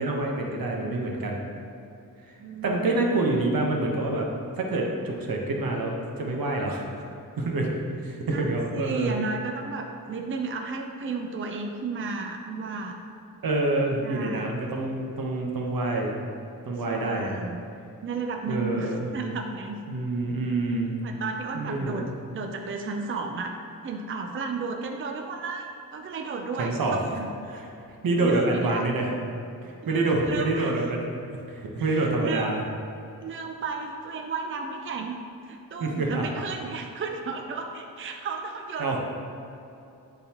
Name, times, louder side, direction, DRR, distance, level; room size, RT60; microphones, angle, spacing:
voice 1, 0.0-1.4 2.2-2.3 2.6-4.3 4.6-6.8 7.4-9.1 13.4-16.1 16.6-17.4 18.5-19.1 19.9-20.9 21.5-22.0 26.6-27.0 27.5-27.6 28.0-29.1 29.6-31.1 31.5-32.6 35.8-36.2 38.8-39.0, right 2 dB, 75° right, 0 dB, 1.1 m, -27 dB
voice 2, 2.4-3.0 8.3-13.0 14.0-14.5 16.9-17.6 18.0-19.8 21.0-22.1 22.3-23.5 23.8-27.3 28.2-28.8 29.8-30.8 31.8-32.6 33.2-35.2 35.4-39.0, right 4 dB, 35° right, 3 dB, 0.5 m, -33 dB
11.5 x 4.0 x 2.9 m, 2.7 s
wide cardioid pair, 95°, 35 cm